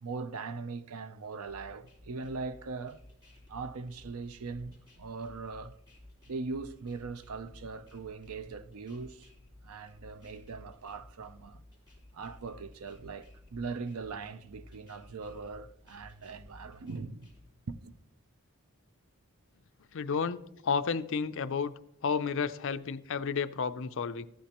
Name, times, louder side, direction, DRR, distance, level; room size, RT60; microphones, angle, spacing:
voice 1, 0.0-3.0 3.5-5.8 6.3-9.3 9.6-11.6 12.1-17.3 17.7-17.9, right 4 dB, 75° right, 0.6 m, -40 dB
sound 1, 1.5-17.5, left 1 dB, 20° right, 4.4 m, -55 dB
voice 2, 19.9-21.7 22.0-24.3, left 5 dB, 60° left, 0.5 m, -31 dB
14.0 x 10.0 x 2.9 m
head